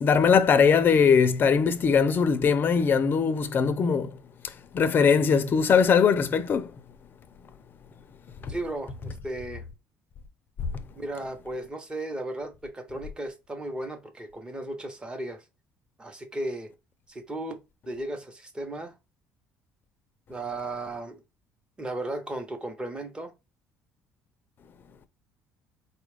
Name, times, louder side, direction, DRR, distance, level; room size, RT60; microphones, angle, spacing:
voice 1, 0.0-4.1 4.7-6.7, left 6 dB, 35° left, 0.5 m, -21 dB
voice 2, 8.5-9.6 10.9-15.4 16.0-16.7 17.1-17.6 17.9-18.9 20.3-21.2 21.8-23.3, right 1 dB, 15° right, 0.9 m, -35 dB
4.3 x 2.4 x 3.2 m
cardioid pair, 135°, 6 cm